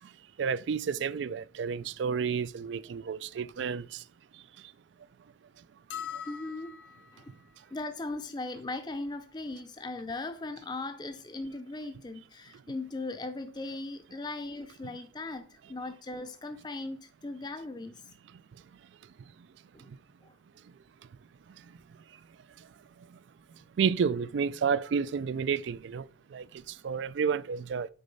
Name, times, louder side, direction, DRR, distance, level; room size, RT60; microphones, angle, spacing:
voice 1, 0.4-4.0 23.8-26.1 26.3-27.9, right 6 dB, 75° right, 0.3 m, -30 dB
sound 1, 5.9-7.2, left 8 dB, 70° left, 1.2 m, -41 dB
voice 2, 6.3-6.8 7.1-7.3 7.7-18.0 19.7-19.9 20.2-20.3, left 2 dB, 25° left, 0.5 m, -38 dB
6.7 x 4.2 x 5.4 m
head